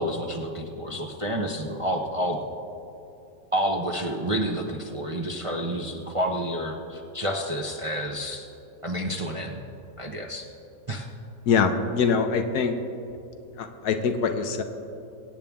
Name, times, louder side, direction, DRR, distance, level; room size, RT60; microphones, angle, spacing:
voice 1, 0.0-2.4 3.5-8.5 8.8-9.6 10.0-10.5 10.9-11.1, equal, 45° right, 1 dB, 0.4 m, -29 dB
voice 2, 11.5-12.8 13.6-14.6, left 5 dB, 70° left, 7 dB, 1.3 m, -24 dB
23.5 x 8.7 x 3.5 m, 2.8 s
omnidirectional pair, 1.8 m